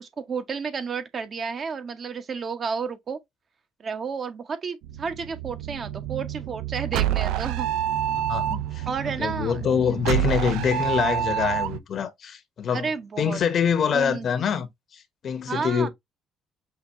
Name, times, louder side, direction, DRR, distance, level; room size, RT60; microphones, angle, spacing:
voice 1, 0.0-3.2 3.8-7.7 8.9-9.6 12.7-13.4 13.9-14.3 15.5-15.9, right 5 dB, 45° right, 0.8 m, -31 dB
sound 1, 4.8-11.8, right 11 dB, 80° right, 0.4 m, -28 dB
voice 2, 8.1-8.9 9.2-12.9 13.2-14.7 14.9-15.9, left 7 dB, 55° left, 0.9 m, -25 dB
5.7 x 2.3 x 2.8 m
supercardioid pair, 70°, 0 cm